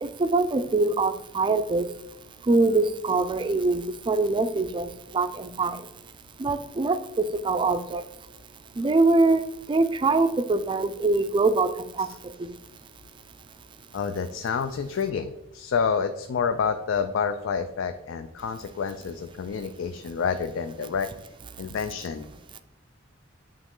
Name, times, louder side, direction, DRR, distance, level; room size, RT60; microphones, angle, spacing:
voice 1, 0.0-1.9 2.5-4.9 5.1-5.8 6.4-8.0 8.8-9.4 9.7-11.7 12.0-12.1 12.4-12.5, right 3 dB, 25° right, 11 dB, 0.3 m, -23 dB
voice 2, 13.9-21.1 21.6-22.3, left 6 dB, 70° left, 8 dB, 0.4 m, -28 dB
8.6 x 3.0 x 3.7 m, 0.91 s
head